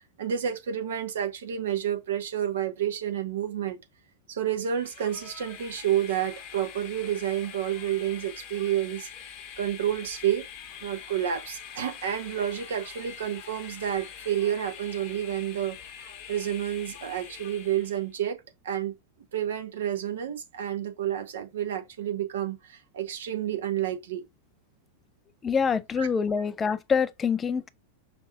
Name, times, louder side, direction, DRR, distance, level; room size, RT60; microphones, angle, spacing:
voice 1, 0.0-3.8 4.3-9.1 9.6-10.5 10.8-18.9 19.3-24.2 26.0-26.1, right 10 dB, 60° right, 0.8 m, -30 dB
Train, 4.6-18.1, left 8 dB, 40° left, 0.9 m, -44 dB
voice 2, 25.4-27.7, left 6 dB, 20° left, 0.4 m, -26 dB
5.2 x 2.7 x 2.6 m
figure-of-eight pair, 90°, 0 cm